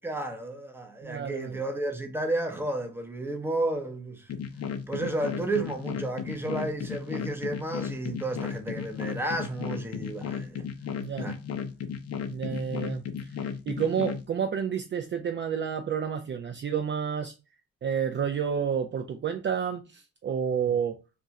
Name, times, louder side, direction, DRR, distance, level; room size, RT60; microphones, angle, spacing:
voice 1, 0.0-4.3 4.9-10.6 11.2-11.3, right 2 dB, 5° right, 0.7 m, -32 dB
voice 2, 1.0-1.6 11.0-11.3 12.3-17.3 17.8-21.0, right 7 dB, 40° right, 0.4 m, -30 dB
sound 1, 4.3-14.2, left 7 dB, 55° left, 0.6 m, -35 dB
2.4 x 2.2 x 4.0 m
cardioid pair, 90°, 30 cm